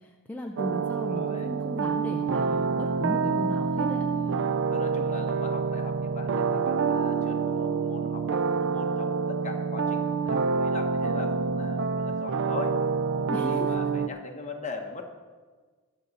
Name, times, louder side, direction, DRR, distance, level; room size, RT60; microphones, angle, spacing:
voice 1, 0.0-4.1 13.3-13.7, left 1 dB, 5° left, 1 dB, 0.5 m, -36 dB
sound 1, 0.6-14.1, right 5 dB, 60° right, 0.4 m, -27 dB
voice 2, 1.0-1.5 2.4-2.7 4.1-12.8 13.2-15.1, left 3 dB, 35° left, 2 dB, 1.3 m, -40 dB
20.5 x 7.2 x 4.1 m, 1.5 s
head